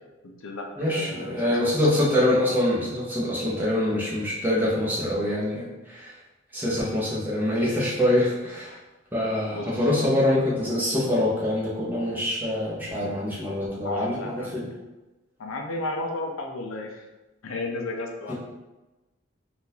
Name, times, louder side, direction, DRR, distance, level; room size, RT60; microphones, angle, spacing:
voice 1, 0.2-2.0 3.9-4.0 9.5-9.9 13.8-14.6 15.4-17.1 17.4-18.3, left 2 dB, 75° left, 2 dB, 0.5 m, -34 dB
voice 2, 0.8-6.1 6.5-8.8 9.1-14.7 18.3-18.4, left 1 dB, 10° right, -7 dB, 0.8 m, -25 dB
3.7 x 2.4 x 2.7 m, 1.1 s
head